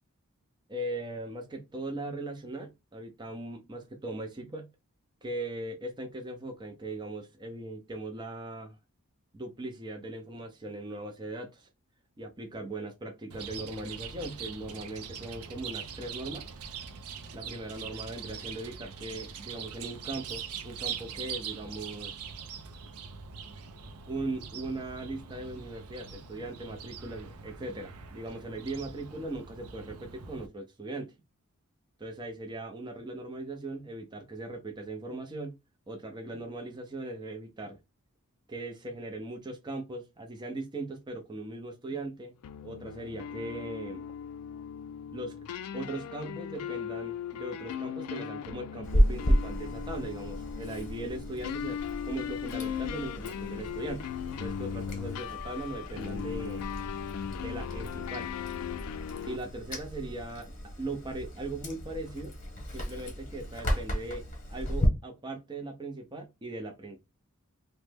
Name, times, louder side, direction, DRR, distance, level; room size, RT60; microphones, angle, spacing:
voice 1, 0.7-4.7 5.2-8.8 9.3-11.7 12.2-16.5 17.3-22.1 24.1-31.1 32.0-35.6 35.9-37.8 38.5-42.3 42.6-44.0 45.1-45.3 45.7-54.1 54.4-56.7 57.4-58.3 59.3-60.5 60.8-62.3 62.7-64.2 64.5-67.0, right 2 dB, 20° right, 0.5 m, -39 dB
Chirp tweet, 13.3-30.5, right 7 dB, 85° right, 0.5 m, -42 dB
sound 1, 42.4-59.4, left 8 dB, 85° left, 0.3 m, -38 dB
Chewing mastication, 48.8-64.9, equal, 35° left, 0.9 m, -33 dB
3.1 x 2.1 x 3.2 m
head